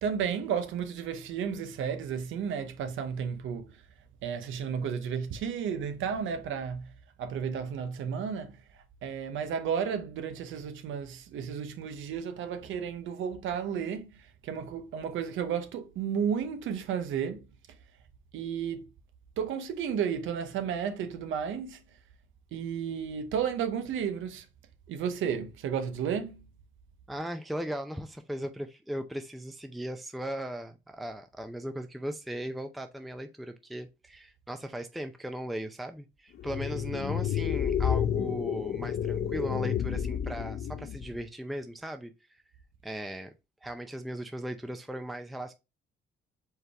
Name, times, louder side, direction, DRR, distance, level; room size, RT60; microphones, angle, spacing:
voice 1, 0.0-3.8 4.2-6.9 7.2-17.4 18.3-18.9 19.4-21.8 22.5-24.5 24.9-26.5, right 7 dB, 80° right, 0.8 m, -33 dB
voice 2, 27.1-42.1 42.8-43.3 43.6-45.5, right 1 dB, ahead, 0.5 m, -37 dB
sound 1, 36.4-41.2, left 9 dB, 55° left, 0.5 m, -30 dB
4.6 x 3.3 x 3.4 m
cardioid pair, 90°, 20 cm